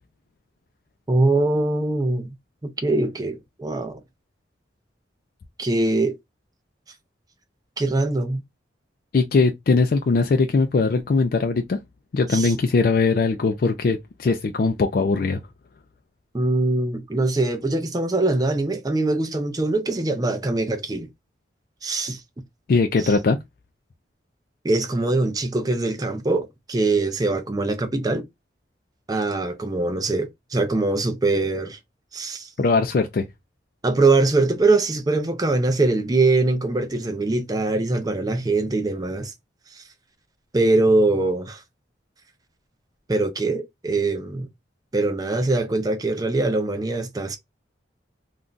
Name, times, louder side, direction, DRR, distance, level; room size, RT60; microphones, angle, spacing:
voice 1, 1.1-2.3 2.6-4.0 5.6-6.2 7.8-8.4 12.3-12.5 16.3-21.1 21.8-22.2 23.0-23.1 24.6-28.2 29.1-31.8 32.1-32.5 33.8-39.3 39.8-39.9 40.5-41.6 43.1-44.5 44.9-47.4, right 2 dB, 20° right, 0.4 m, -22 dB
voice 2, 9.1-11.8 12.1-15.4 22.7-23.4 32.6-33.2, left 4 dB, 50° left, 0.3 m, -20 dB
2.5 x 2.2 x 3.7 m
head